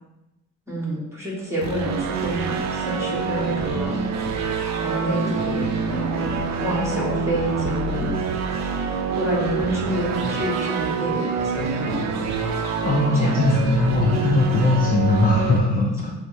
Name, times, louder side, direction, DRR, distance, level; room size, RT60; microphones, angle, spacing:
voice 1, 0.7-4.0 4.8-8.1 9.1-12.0 13.1-13.7, right 1 dB, 10° right, -4 dB, 1.5 m, -28 dB
sound 1, 1.6-15.6, right 4 dB, 65° right, 0.5 m, -26 dB
voice 2, 12.8-16.1, left 2 dB, 30° left, -2 dB, 0.5 m, -20 dB
6.0 x 2.1 x 2.6 m, 0.96 s
cardioid pair, 90°, 30 cm